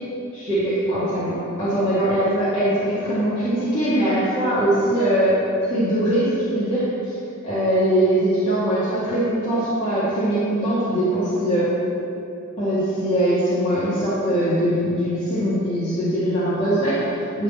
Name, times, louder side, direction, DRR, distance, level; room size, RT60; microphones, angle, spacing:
voice 1, 0.3-7.1 7.4-11.7 12.6-17.4, right 1 dB, 30° left, -13 dB, 2.5 m, -21 dB
12.5 x 4.3 x 7.4 m, 2.8 s
head